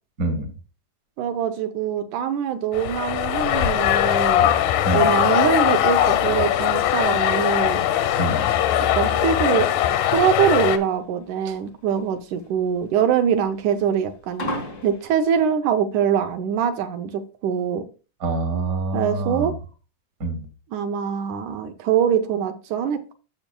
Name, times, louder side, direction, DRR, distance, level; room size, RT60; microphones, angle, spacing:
voice 1, 0.2-0.5 4.8-5.1 8.2-8.5 11.4-11.5 18.2-19.5 20.2-20.5, right 2 dB, 60° right, 4 dB, 0.9 m, -26 dB
voice 2, 1.2-4.5 4.9-7.8 9.0-9.7 10.1-14.5 14.8-17.9 18.9-19.5 20.7-23.1, right 8 dB, 75° right, 7 dB, 2.0 m, -23 dB
sound 1, 2.7-10.8, left 11 dB, 85° left, 2.5 m, -20 dB
sound 2, 10.8-15.5, equal, 45° left, 0.9 m, -35 dB
14.0 x 6.0 x 2.2 m, 0.35 s
omnidirectional pair, 3.8 m